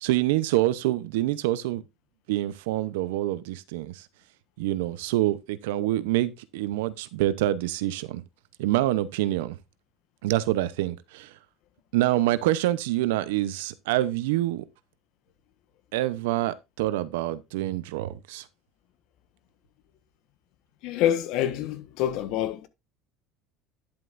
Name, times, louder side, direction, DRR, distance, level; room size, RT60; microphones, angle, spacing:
voice 1, 0.0-1.8 2.3-4.0 4.6-8.2 8.6-9.6 10.2-11.3 11.9-14.7 15.9-18.4, right 15 dB, 90° right, 0.8 m, -26 dB
voice 2, 20.8-22.7, left 11 dB, 65° left, 1.3 m, -26 dB
10.5 x 7.8 x 2.6 m
supercardioid pair, 125°, 0 cm